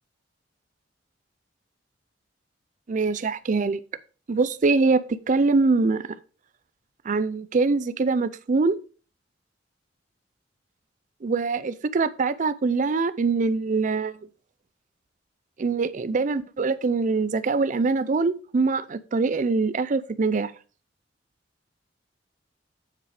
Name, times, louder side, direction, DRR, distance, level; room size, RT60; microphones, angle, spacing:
voice 1, 2.9-3.8 4.3-6.0 7.0-8.8 11.2-14.2 15.6-20.5, right 4 dB, 45° right, 0.4 m, -23 dB
7.5 x 6.3 x 4.9 m
head